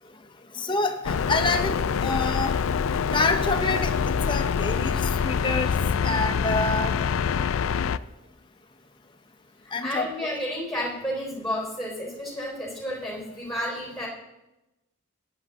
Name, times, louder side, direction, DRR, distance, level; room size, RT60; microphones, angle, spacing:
voice 1, 0.5-2.6 3.1-5.8 6.0-7.0 9.7-10.1, left 2 dB, 20° left, 5 dB, 0.9 m, -27 dB
sound 1, 1.0-8.0, left 6 dB, 75° left, 0.4 m, -25 dB
voice 2, 9.6-14.1, equal, ahead, -2 dB, 3.5 m, -31 dB
13.5 x 9.9 x 3.7 m, 0.97 s
head